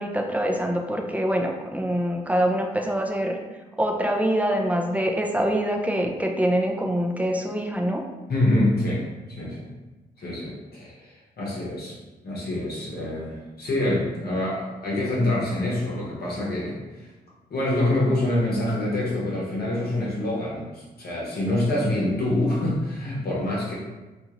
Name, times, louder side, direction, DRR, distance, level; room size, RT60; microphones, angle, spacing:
voice 1, 0.0-3.4 3.8-8.0, equal, 10° right, 2 dB, 0.5 m, -24 dB
voice 2, 8.3-9.0 9.3-9.7 10.2-12.0 12.2-16.8 17.5-23.7, left 1 dB, 60° left, -6 dB, 1.0 m, -26 dB
2.6 x 2.3 x 2.9 m, 1.2 s
supercardioid pair, 45°, 18 cm